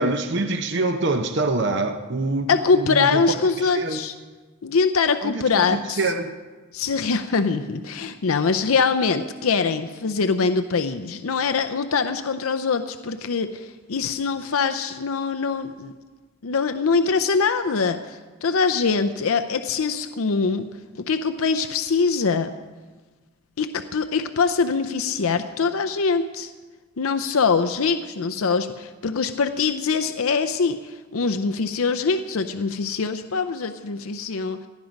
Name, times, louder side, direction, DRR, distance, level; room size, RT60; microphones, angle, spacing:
voice 1, 0.0-3.2 3.6-4.0 5.2-6.3, right 2 dB, 50° right, 6 dB, 0.7 m, -25 dB
voice 2, 2.5-4.1 4.6-6.0 6.7-15.9 16.4-20.7 21.1-22.5 23.6-26.5 27.0-34.6, left 5 dB, 75° left, 8 dB, 0.6 m, -23 dB
18.5 x 12.0 x 5.2 m, 1.3 s
head